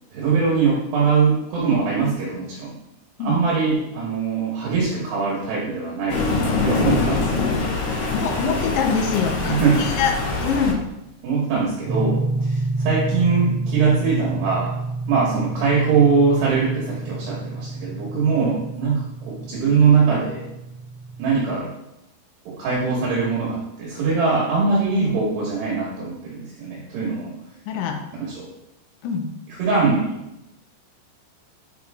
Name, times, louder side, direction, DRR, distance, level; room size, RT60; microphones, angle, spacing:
voice 1, 0.1-2.7 3.2-6.2 6.6-7.5 9.4-9.9 11.2-14.7 15.1-20.4 21.2-21.7 22.5-27.3 28.2-28.5 29.6-30.1, right 5 dB, 70° right, -5 dB, 3.3 m, -22 dB
Thunder, 6.1-10.7, left 3 dB, 65° left, 2.2 m, -23 dB
voice 2, 8.1-10.1 10.4-10.8 27.7-28.0 29.0-29.3, left 6 dB, 80° left, 4 dB, 3.0 m, -24 dB
sound 1, 11.9-21.6, right 2 dB, 85° right, 3.4 m, -29 dB
8.0 x 5.3 x 3.5 m, 0.90 s
omnidirectional pair, 5.4 m